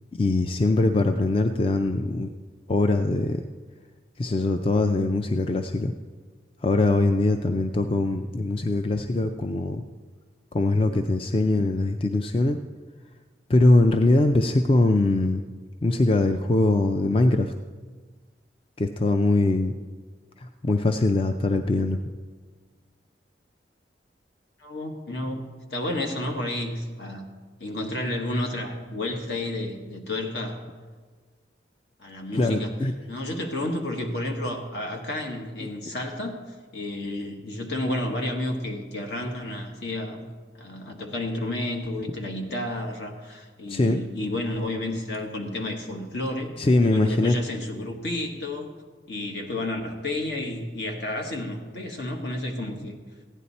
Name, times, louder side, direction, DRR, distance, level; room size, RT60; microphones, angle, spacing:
voice 1, 0.2-2.3 2.7-3.4 4.2-5.9 6.6-9.8 10.5-12.6 13.5-15.4 15.8-17.5 18.8-19.7 20.4-22.0 32.3-32.9 43.7-44.0 46.6-47.4, left 2 dB, 30° left, 7 dB, 0.4 m, -22 dB
voice 2, 24.6-27.3 27.6-30.6 32.0-32.7 33.1-36.3 36.7-40.3 40.6-48.7 49.1-52.9, left 1 dB, 70° left, 2 dB, 1.5 m, -31 dB
15.5 x 9.9 x 4.2 m, 1.5 s
head